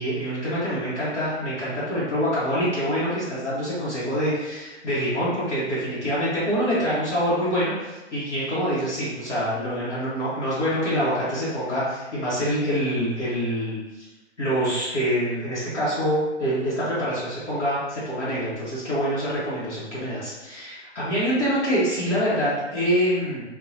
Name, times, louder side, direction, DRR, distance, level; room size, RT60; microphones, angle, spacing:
voice 1, 0.0-14.1 14.4-23.4, equal, 80° left, -10 dB, 1.0 m, -25 dB
2.8 x 2.2 x 2.5 m, 1.1 s
figure-of-eight pair, 125°, 34 cm